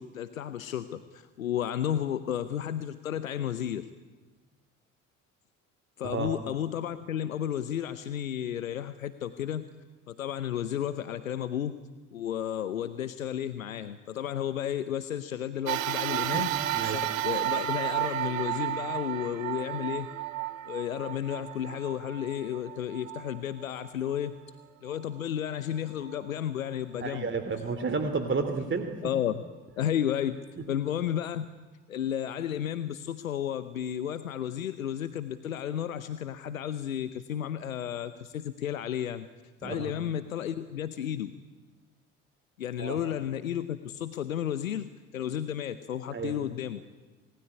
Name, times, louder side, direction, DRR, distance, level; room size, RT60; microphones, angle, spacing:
voice 1, 0.0-3.9 6.0-9.6 10.1-11.7 12.1-16.5 16.8-20.1 20.7-24.3 24.8-27.3 29.0-29.4 29.8-30.4 30.7-31.5 31.9-39.3 39.6-41.3 42.6-46.8, left 10 dB, 85° left, 12 dB, 0.9 m, -32 dB
sound 1, 15.7-24.3 24.9-25.0 26.1-26.2, right 14 dB, 80° right, 1.1 m, -33 dB
voice 2, 16.3-17.0 27.0-28.9 39.6-39.9 42.8-43.0 46.1-46.4, right 4 dB, 30° right, 8 dB, 2.9 m, -31 dB
28.5 x 20.0 x 9.8 m, 1.3 s
figure-of-eight pair, 55°, 40 cm